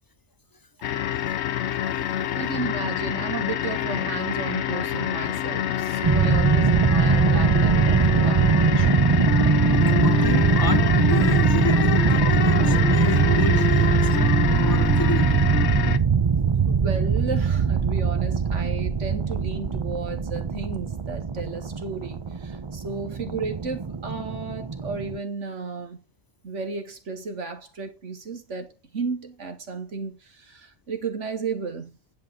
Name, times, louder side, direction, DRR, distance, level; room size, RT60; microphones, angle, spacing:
sound 1, 0.8-16.0, left 10 dB, 70° left, 1.0 m, -27 dB
voice 1, 1.8-2.5 9.9-15.4, left 2 dB, 25° left, 0.6 m, -30 dB
voice 2, 2.3-9.0 16.7-26.0 26.4-32.0, right 4 dB, 85° right, 2.2 m, -33 dB
sound 2, 6.0-25.2, right 5 dB, 30° right, 0.5 m, -21 dB
10.5 x 5.5 x 5.1 m
omnidirectional pair, 1.2 m